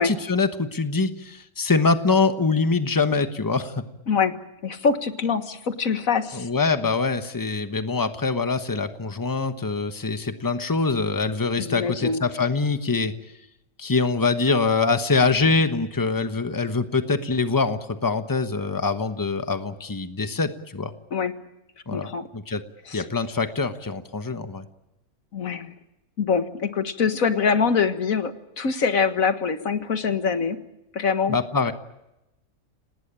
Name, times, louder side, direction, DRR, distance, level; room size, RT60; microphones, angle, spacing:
voice 1, 0.0-3.8 6.3-13.1 13.8-20.9 21.9-22.6 22.9-24.6 31.3-31.7, left 4 dB, 15° left, 9 dB, 1.1 m, -24 dB
voice 2, 4.1-6.5 11.6-12.2 21.1-21.4 21.9-22.3 22.9-23.1 25.3-25.7 26.2-30.6 30.9-31.4, left 5 dB, 85° left, 9 dB, 2.0 m, -24 dB
27.5 x 19.0 x 8.8 m, 0.93 s
omnidirectional pair, 1.4 m